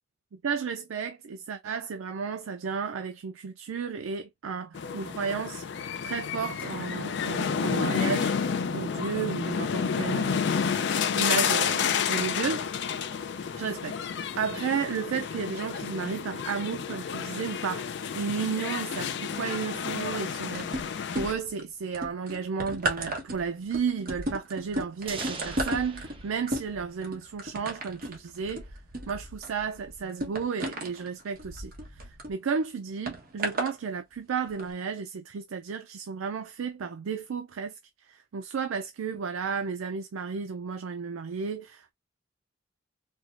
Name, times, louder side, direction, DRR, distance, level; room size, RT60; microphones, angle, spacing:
voice 1, 0.3-5.6 6.0-8.3 8.7-12.7 13.5-14.0 14.4-20.9 21.1-28.7 29.1-37.8 38.1-41.9, right 6 dB, 85° right, 0.4 m, -33 dB
sound 1, 4.7-21.3, left 7 dB, 55° left, 0.4 m, -30 dB
sound 2, 20.6-21.6 21.9-32.3 33.1-33.7 34.5-34.6, right 1 dB, 45° right, 1.1 m, -34 dB
sound 3, 25.1-27.9, right 4 dB, 25° right, 0.7 m, -42 dB
4.4 x 2.1 x 2.5 m
head